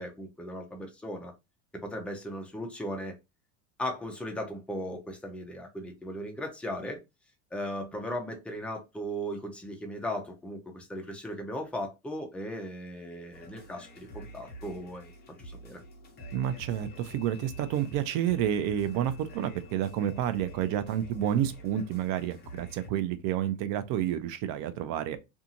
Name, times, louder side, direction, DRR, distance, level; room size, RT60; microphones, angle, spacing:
voice 1, 0.0-1.3 1.7-3.2 3.8-7.0 7.5-15.1 15.4-15.8, equal, 5° left, 0.4 m, -37 dB
sound 1, 13.3-22.9, right 1 dB, 20° left, 0.9 m, -47 dB
sound 2, 14.7-20.9, left 10 dB, 70° left, 0.8 m, -57 dB
voice 2, 16.3-25.2, right 10 dB, 55° right, 0.5 m, -30 dB
2.6 x 2.4 x 2.7 m
supercardioid pair, 125°, 42 cm